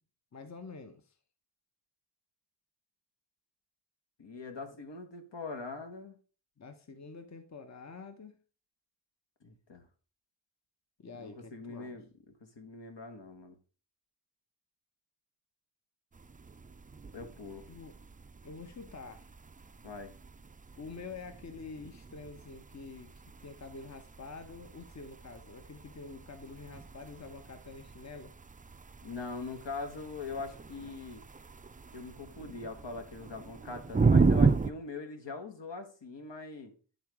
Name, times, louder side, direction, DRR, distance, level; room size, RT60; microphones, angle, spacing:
voice 1, 0.3-1.1 6.6-8.4 11.0-12.0 17.7-17.9 18.4-19.3 20.8-28.3, left 4 dB, 35° left, 0.8 m, -47 dB
voice 2, 4.2-6.2 9.4-9.8 11.2-12.1 12.4-13.6 17.1-17.7 19.8-20.1 29.0-31.2 31.9-36.7, left 3 dB, 70° left, 1.3 m, -42 dB
sound 1, 16.1-34.7, right 4 dB, 20° right, 0.4 m, -34 dB
10.5 x 3.9 x 4.6 m
wide cardioid pair, 90°, 45 cm